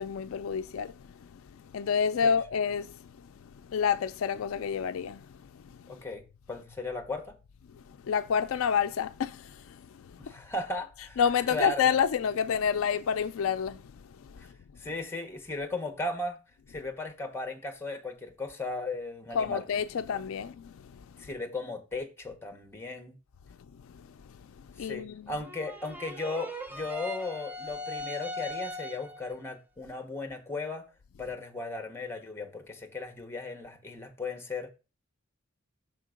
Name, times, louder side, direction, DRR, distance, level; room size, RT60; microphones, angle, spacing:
voice 1, 0.0-3.1 3.4-6.0 7.7-10.3 11.2-14.5 19.3-21.2 23.8-25.3, left 7 dB, 70° left, 0.4 m, -30 dB
voice 2, 5.9-6.2 6.5-7.3 10.2-11.2 11.5-11.9 14.4-14.5 14.8-16.4 16.7-19.6 21.2-23.2 24.8-30.8 31.2-34.7, left 2 dB, 10° left, 1.1 m, -36 dB
sound 1, 25.4-29.3, left 1 dB, 10° right, 0.7 m, -39 dB
6.3 x 3.7 x 5.0 m
head